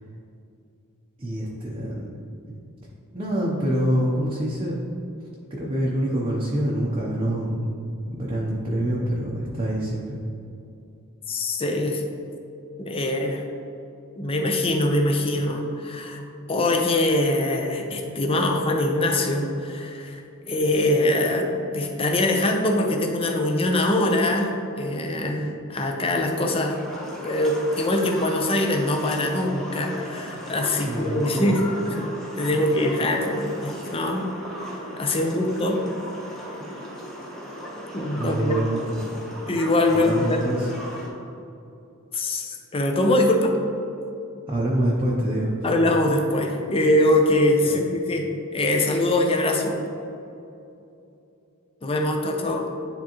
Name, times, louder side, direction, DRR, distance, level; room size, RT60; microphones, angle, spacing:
voice 1, 1.2-2.1 3.1-4.8 5.5-7.6 8.0-10.2 30.7-31.5 38.2-39.0 39.9-40.7 44.5-45.5 47.6-47.8, right 1 dB, 25° right, -5 dB, 0.7 m, -26 dB
voice 2, 11.3-12.0 12.8-13.4 14.2-16.2 16.5-20.2 20.5-21.5 21.7-24.5 24.8-26.8 27.2-32.1 32.4-34.2 35.0-35.8 37.9-38.6 39.5-40.4 42.1-43.5 45.6-48.3 48.5-49.8 51.8-52.7, left 1 dB, 25° left, 2 dB, 0.6 m, -23 dB
sound 1, 26.2-41.1, equal, ahead, 1.0 m, -37 dB
10.0 x 3.6 x 3.0 m, 2.7 s
head